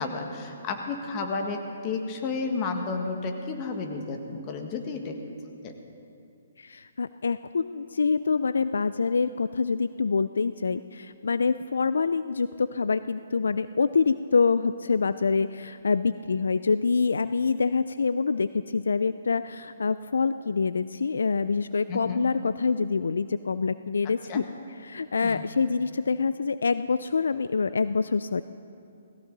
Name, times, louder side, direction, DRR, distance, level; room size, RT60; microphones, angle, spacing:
voice 1, 0.0-5.2 5.6-5.8 21.9-22.3 24.3-24.5 25.2-25.4, left 4 dB, 30° left, 4 dB, 1.6 m, -32 dB
voice 2, 6.6-24.4 24.8-28.4, left 4 dB, 80° left, 14 dB, 0.3 m, -26 dB
17.0 x 17.0 x 4.0 m, 2.6 s
hypercardioid pair, 140°, 0 cm